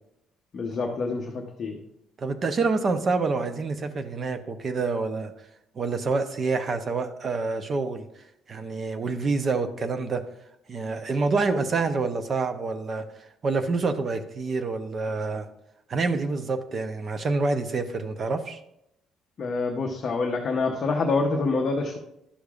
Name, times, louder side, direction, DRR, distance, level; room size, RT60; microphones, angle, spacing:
voice 1, 0.5-1.8 19.4-22.0, left 3 dB, 30° left, 1 dB, 0.7 m, -26 dB
voice 2, 2.2-5.3 5.8-8.0 8.5-10.2 10.7-13.1 13.4-15.5 15.9-18.6, right 3 dB, 30° right, 8 dB, 0.6 m, -27 dB
11.5 x 6.6 x 2.4 m, 0.81 s
cardioid pair, 180°, 0 cm